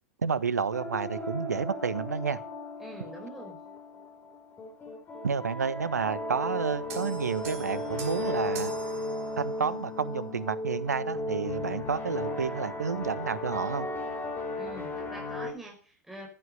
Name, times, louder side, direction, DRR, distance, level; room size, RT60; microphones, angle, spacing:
voice 1, 0.2-2.4 5.2-8.7 9.4-13.9, right 6 dB, 75° right, 16 dB, 1.2 m, -30 dB
sound 1, 0.7-15.5, left 1 dB, 20° left, 7.6 m, -36 dB
voice 2, 2.8-3.6 14.6-16.3, right 1 dB, 5° right, -2 dB, 5.1 m, -44 dB
sound 2, 6.9-9.8, right 6 dB, 55° right, 6.4 m, -43 dB
15.0 x 11.0 x 6.6 m, 0.39 s
figure-of-eight pair, 95°, 9 cm